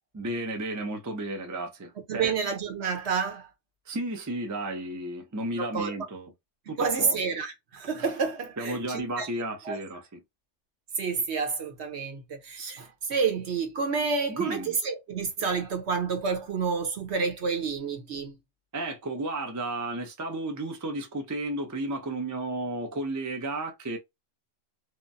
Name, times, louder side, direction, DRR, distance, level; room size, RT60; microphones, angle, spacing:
voice 1, 0.1-2.3 3.9-6.3 6.7-7.2 8.6-10.2 14.3-14.8 18.7-24.0, right 2 dB, 25° right, 0.4 m, -33 dB
voice 2, 2.1-3.5 5.6-5.9 6.7-9.3 9.6-9.8 11.0-18.4, right 5 dB, 60° right, 1.1 m, -29 dB
3.1 x 2.1 x 2.6 m
omnidirectional pair, 1.3 m